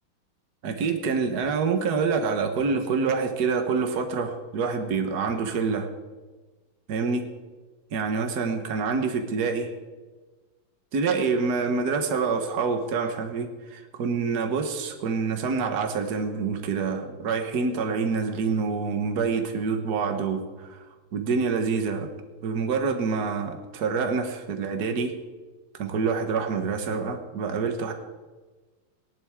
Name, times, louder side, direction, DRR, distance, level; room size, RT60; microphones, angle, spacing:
voice 1, 0.6-5.9 6.9-7.2 7.9-9.7 10.9-20.8 21.1-22.1 22.4-25.1 25.8-27.9, right 5 dB, 55° right, 5 dB, 1.7 m, -26 dB
19.0 x 10.5 x 3.7 m, 1.3 s
omnidirectional pair, 2.3 m